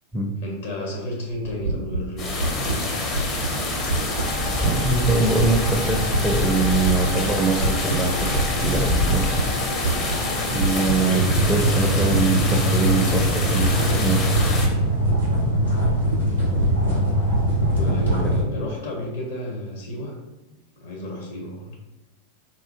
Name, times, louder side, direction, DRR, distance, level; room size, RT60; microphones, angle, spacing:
voice 1, 0.4-2.9 16.2-16.7 17.6-20.2 20.8-21.8, left 1 dB, 60° left, -1 dB, 1.0 m, -32 dB
sound 1, 1.3-18.6, right 2 dB, 80° right, 0.3 m, -29 dB
sound 2, 2.2-14.7, left 2 dB, 30° left, 0.6 m, -26 dB
sound 3, 4.1-18.4, right 1 dB, 90° left, 1.0 m, -25 dB
voice 2, 4.6-9.3 10.5-14.3 17.9-18.0 18.2-18.3, right 3 dB, 15° right, 2 dB, 0.4 m, -23 dB
4.0 x 2.1 x 2.9 m, 1.1 s
figure-of-eight pair, 90°, 0 cm